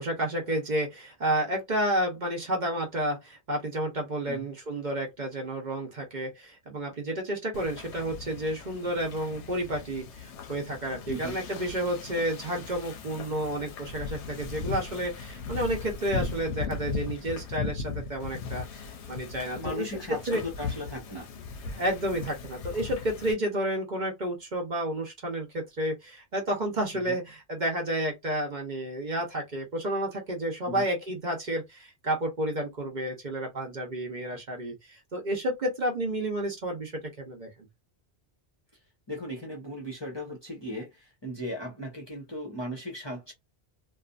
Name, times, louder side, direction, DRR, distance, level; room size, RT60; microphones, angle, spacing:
voice 1, 0.0-19.9 20.3-20.4 21.7-37.5, right 1 dB, 45° right, 0.9 m, -31 dB
Wind / Ocean, 7.5-23.3, left 5 dB, 90° left, 0.9 m, -38 dB
voice 2, 11.1-11.4 19.6-21.3 26.9-27.2 30.7-30.8 39.1-43.3, equal, 25° left, 0.7 m, -37 dB
2.6 x 2.3 x 2.4 m
omnidirectional pair, 1.1 m